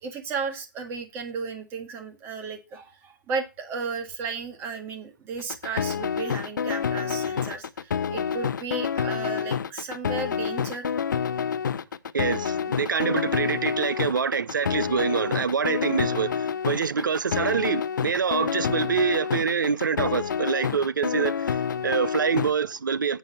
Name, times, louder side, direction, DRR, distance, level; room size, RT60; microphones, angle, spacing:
voice 1, 0.0-10.9, right 5 dB, 20° right, 1.7 m, -34 dB
sound 1, 5.4-22.5, left 7 dB, 65° left, 0.6 m, -28 dB
voice 2, 12.1-23.2, right 6 dB, 75° right, 0.7 m, -26 dB
8.3 x 5.4 x 5.6 m
figure-of-eight pair, 130°, 11 cm